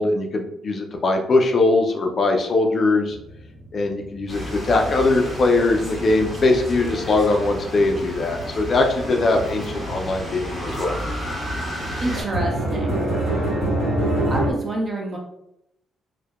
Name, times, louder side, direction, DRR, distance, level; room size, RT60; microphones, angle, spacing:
voice 1, 0.0-3.2 3.7-11.0, left 2 dB, 45° left, 3 dB, 0.3 m, -21 dB
sound 1, 3.1-4.8 5.1-14.5, right 1 dB, 75° right, 1.0 m, -28 dB
sound 2, 4.3-12.2, equal, 15° right, 1.1 m, -32 dB
voice 2, 12.0-13.0 13.4-13.5 14.3-15.2, right 1 dB, 35° right, 0 dB, 0.6 m, -28 dB
2.6 x 2.1 x 2.3 m, 0.80 s
cardioid pair, 90°, 0 cm